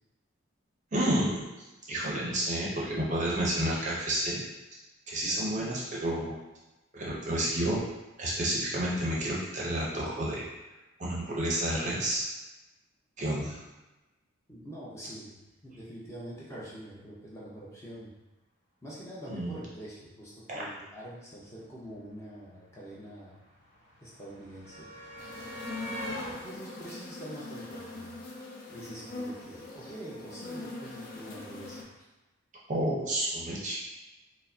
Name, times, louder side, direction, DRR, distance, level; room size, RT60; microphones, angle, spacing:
voice 1, 0.9-4.4 5.1-6.3 6.9-7.8 8.2-10.5 11.0-12.2 13.2-13.6 19.3-19.5 20.5-20.6 32.7-33.8, right 1 dB, 35° right, -5 dB, 0.6 m, -30 dB
voice 2, 5.2-5.7 7.1-7.4 14.5-18.1 18.8-23.3 24.0-24.9 26.4-28.2 28.7-32.0, right 1 dB, 15° left, -7 dB, 0.7 m, -45 dB
sound 1, 21.8-21.9 22.1-28.3 29.5-29.6 29.9-30.0, equal, 65° left, 1.1 m, -44 dB
sound 2, 25.2-31.8, left 2 dB, 45° left, 0.4 m, -42 dB
4.6 x 2.1 x 2.6 m, 1.1 s
head